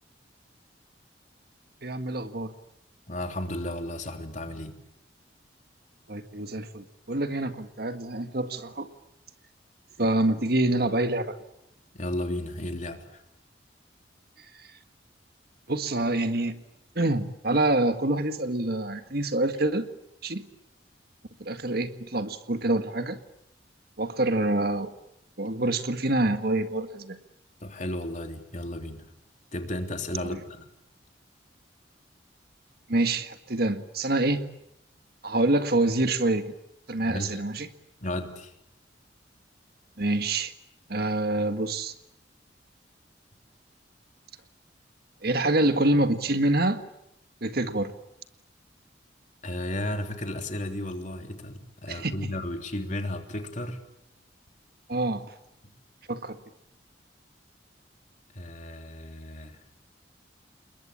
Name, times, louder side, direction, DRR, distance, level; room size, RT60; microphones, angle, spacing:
voice 1, 1.8-2.5 6.1-8.9 10.0-11.4 15.7-16.6 17.0-19.9 20.2-20.5 21.4-23.2 24.0-24.9 25.4-27.2 30.2-30.4 32.9-34.5 35.2-36.5 36.9-37.7 40.0-40.5 40.9-41.9 45.2-46.8 47.4-47.9 51.9-52.1 54.9-55.3 56.1-56.4, right 2 dB, 60° right, 9 dB, 1.8 m, -26 dB
voice 2, 3.1-4.7 11.9-13.2 27.6-29.1 29.5-30.7 37.0-37.3 38.0-38.5 49.4-53.8 58.3-59.6, left 1 dB, 45° left, 5 dB, 3.2 m, -34 dB
28.5 x 22.0 x 8.7 m, 0.81 s
head